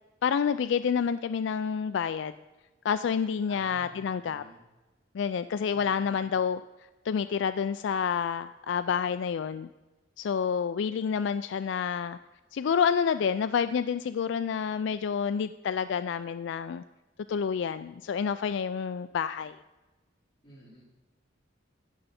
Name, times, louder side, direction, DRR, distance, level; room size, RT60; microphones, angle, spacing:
voice 1, 0.2-2.3 2.8-4.4 5.1-6.6 7.0-9.7 10.2-12.2 12.5-16.8 17.3-19.6, left 7 dB, 65° left, 12 dB, 0.3 m, -28 dB
voice 2, 3.5-4.6 5.7-6.3 20.4-20.8, equal, 25° left, -7 dB, 4.4 m, -52 dB
16.0 x 6.5 x 4.2 m, 1.1 s
head